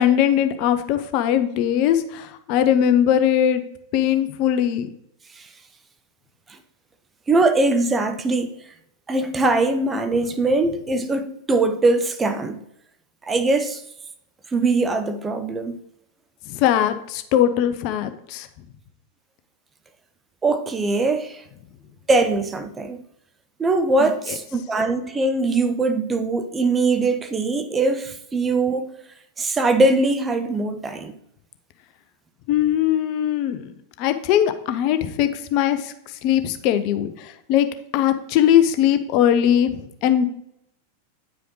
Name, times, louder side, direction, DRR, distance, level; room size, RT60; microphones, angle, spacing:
voice 1, 0.0-3.6 3.9-4.9 16.5-18.5 24.0-24.1 32.5-33.7 34.0-35.9 36.2-37.7 37.9-40.2, left 10 dB, 45° left, 0.6 m, -20 dB
voice 2, 7.3-8.6 9.1-12.6 13.2-13.8 14.5-15.8 20.4-21.4 22.1-23.0 23.6-28.9 29.4-31.1, right 2 dB, 15° right, 0.6 m, -21 dB
9.2 x 4.9 x 3.1 m
figure-of-eight pair, 90°, 0 cm